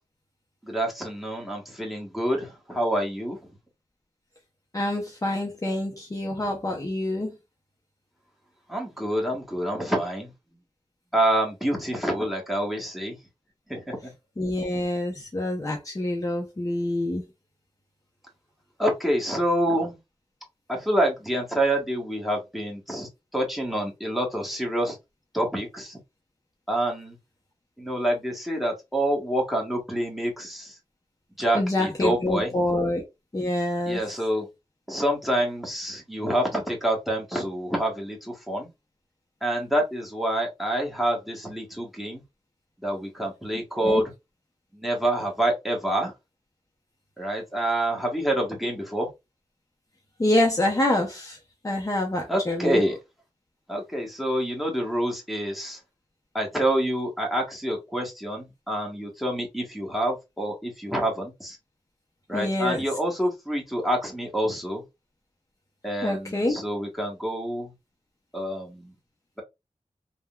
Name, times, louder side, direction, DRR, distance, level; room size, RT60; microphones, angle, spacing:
voice 1, 0.6-3.4 8.7-10.3 11.1-13.2 13.7-14.0 18.8-20.0 20.7-25.0 25.3-26.0 26.7-27.2 27.8-30.7 31.4-32.5 33.9-34.5 34.9-38.7 39.4-42.2 42.8-44.1 44.7-46.1 47.2-49.1 52.3-53.0 53.7-55.8 56.3-61.6 62.3-64.8 65.8-67.7 68.3-68.9, right 1 dB, ahead, 1.1 m, -27 dB
voice 2, 4.7-7.3 14.4-17.2 31.5-33.0 33.3-34.0 43.8-44.0 50.2-51.4 51.6-52.8 62.3-62.8 66.0-66.6, left 1 dB, 25° left, 0.6 m, -26 dB
3.5 x 2.1 x 2.2 m
wide cardioid pair, 80°, 13 cm